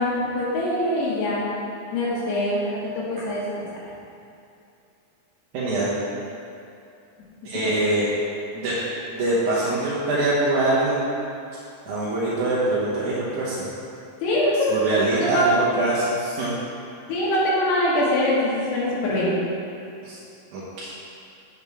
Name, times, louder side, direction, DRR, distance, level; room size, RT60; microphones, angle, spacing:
voice 1, 0.0-1.4 1.9-3.7 7.6-7.7 14.2-15.5 17.1-19.3, left 1 dB, 85° left, -8 dB, 3.4 m, -23 dB
voice 2, 5.5-5.9 7.4-8.1 8.5-8.7 9.1-11.0 11.9-13.7 14.7-16.5 20.0-20.2 20.5-20.9, right 2 dB, 65° right, -9 dB, 2.1 m, -23 dB
8.8 x 6.7 x 3.6 m, 2.6 s
omnidirectional pair, 4.6 m